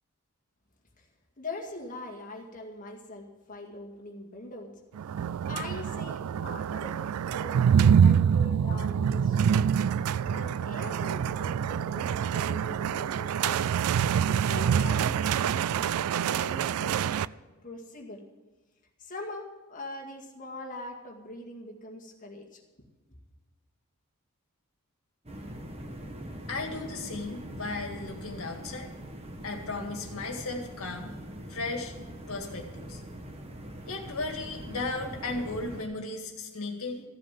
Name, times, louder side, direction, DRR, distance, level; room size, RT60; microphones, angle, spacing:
voice 1, 1.4-4.7 5.5-9.7 10.2-13.6 14.2-17.2 17.6-18.2 19.0-22.6, left 2 dB, 40° left, 0 dB, 2.0 m, -42 dB
sound 1, 5.0-17.3, right 8 dB, 75° right, 0.3 m, -26 dB
sound 2, 25.3-35.8, equal, 30° right, 1.3 m, -42 dB
voice 2, 26.5-28.9 29.4-31.1 31.5-31.9 32.3-33.0 33.9-37.0, left 3 dB, 70° left, 4 dB, 1.9 m, -35 dB
14.5 x 7.7 x 7.5 m, 1.2 s
head